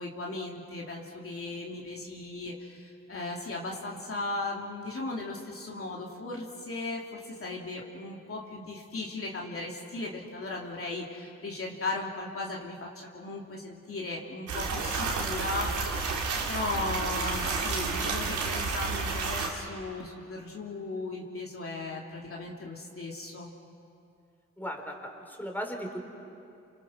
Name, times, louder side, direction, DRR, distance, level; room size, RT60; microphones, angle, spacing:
voice 1, 0.0-23.5, left 2 dB, 50° left, -2 dB, 2.9 m, -37 dB
sound 1, 14.5-19.5, right 4 dB, 90° right, 3.5 m, -31 dB
voice 2, 24.6-26.0, equal, 5° left, 2 dB, 4.2 m, -37 dB
29.5 x 26.5 x 6.3 m, 2.6 s
cardioid pair, 80°, 29 cm